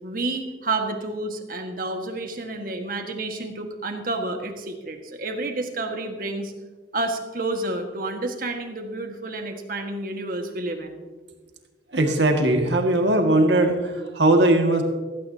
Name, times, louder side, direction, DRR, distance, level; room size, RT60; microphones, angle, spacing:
voice 1, 0.0-6.5 6.9-11.0, right 2 dB, 50° right, 4 dB, 1.7 m, -30 dB
voice 2, 11.9-14.8, right 1 dB, 75° right, 3 dB, 2.1 m, -19 dB
16.0 x 15.5 x 2.9 m, 1.3 s
head